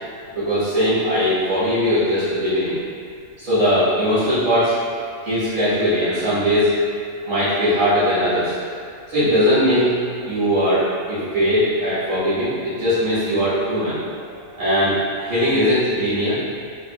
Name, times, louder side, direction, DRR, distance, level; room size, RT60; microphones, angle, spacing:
voice 1, 0.3-2.8 3.4-4.7 5.2-6.8 7.3-8.6 9.1-9.9 10.3-14.0 14.6-16.4, equal, 90° right, -13 dB, 1.9 m, -20 dB
4.5 x 3.8 x 2.4 m, 2.2 s
omnidirectional pair, 1.3 m